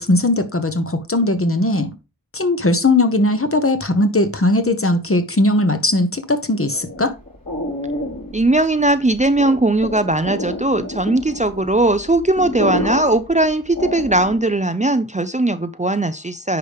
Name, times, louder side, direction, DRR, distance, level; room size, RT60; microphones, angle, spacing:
voice 1, 0.0-1.9 2.3-7.1, left 2 dB, 40° left, 1.1 m, -18 dB
sound 1, 6.7-14.5, left 1 dB, 70° left, 5.0 m, -29 dB
voice 2, 8.3-16.6, right 2 dB, 20° right, 0.5 m, -18 dB
9.6 x 5.1 x 3.5 m
wide cardioid pair, 45°, 35 cm